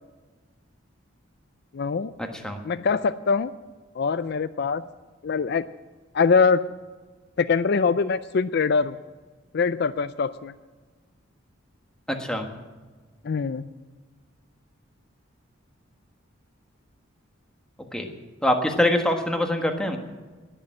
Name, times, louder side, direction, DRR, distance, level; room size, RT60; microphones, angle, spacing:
voice 1, 1.7-2.1 2.6-3.5 4.0-4.8 5.2-5.6 6.1-6.7 7.4-9.0 9.5-10.5 13.2-13.7, left 5 dB, 55° left, 13 dB, 0.4 m, -23 dB
voice 2, 18.4-20.0, left 1 dB, 5° left, 3 dB, 1.4 m, -23 dB
20.0 x 6.8 x 8.7 m, 1.4 s
head